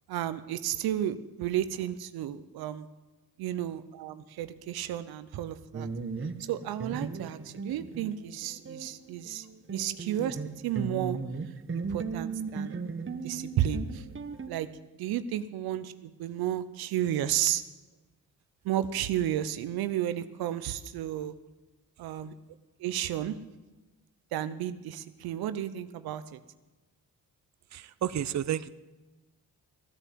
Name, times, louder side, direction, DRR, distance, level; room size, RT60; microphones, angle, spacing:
voice 1, 0.1-2.9 3.4-5.9 6.5-10.4 10.6-11.2 11.9-12.8 13.2-14.0 14.5-14.7 15.0-17.6 18.6-21.4 22.0-22.3 22.8-23.4 24.3-26.4, right 11 dB, 80° right, 12 dB, 0.8 m, -32 dB
sound 1, 5.7-9.0 9.2-14.5, right 4 dB, 35° right, 1.3 m, -37 dB
voice 2, 27.7-28.7, right 10 dB, 50° right, 15 dB, 0.7 m, -31 dB
16.0 x 9.9 x 7.6 m, 1.1 s
supercardioid pair, 50°, 36 cm